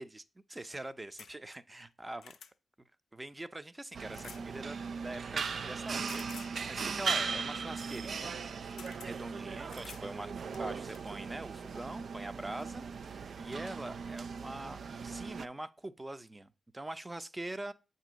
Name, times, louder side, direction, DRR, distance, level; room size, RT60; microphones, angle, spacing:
voice 1, 0.5-2.3 3.1-4.8 5.0-8.7 9.0-17.7, right 1 dB, 25° right, 0.6 m, -43 dB
sound 1, 1.2-1.3 1.9-2.5 4.1-4.5 6.1-6.6 8.3-8.4 8.8-9.1 9.7-10.1 10.5-11.1 12.1-12.2 12.6-12.7, left 7 dB, 80° left, 0.4 m, -51 dB
sound 2, 3.9-15.5, right 5 dB, 65° right, 0.3 m, -38 dB
7.3 x 2.7 x 5.1 m
supercardioid pair, 40°, 0 cm